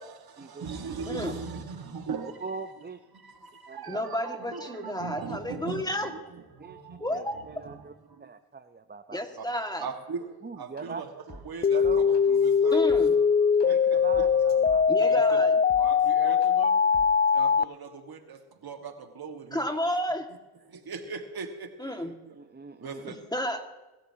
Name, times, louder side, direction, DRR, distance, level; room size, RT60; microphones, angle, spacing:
voice 1, 0.0-2.4 3.2-7.1 7.3-8.3 9.8-10.3 10.5-12.9 13.6-14.3 15.1-15.5 15.8-16.7 17.3-19.7 20.7-22.1 22.8-23.3, right 5 dB, 70° right, 5 dB, 1.8 m, -39 dB
voice 2, 1.1-1.4 3.9-6.1 7.0-7.4 9.1-9.9 12.7-13.2 14.9-15.6 19.5-20.3 21.8-22.1 23.1-23.7, equal, 10° left, 5 dB, 2.0 m, -31 dB
voice 3, 2.4-3.0 3.7-4.1 5.2-5.3 6.6-6.8 7.1-7.9 8.2-9.2 10.4-11.0 11.7-12.2 13.6-15.1 22.0-23.0, right 4 dB, 25° right, 9 dB, 0.8 m, -41 dB
sound 1, 10.8-10.9 11.3-13.7 14.0-15.1 15.7-15.8 16.4-16.5 16.9-17.3, equal, 45° left, 3.4 m, -48 dB
sound 2, 11.6-17.6, left 6 dB, 25° left, 0.5 m, -22 dB
21.5 x 13.0 x 2.9 m, 1.1 s
cardioid pair, 55°, 38 cm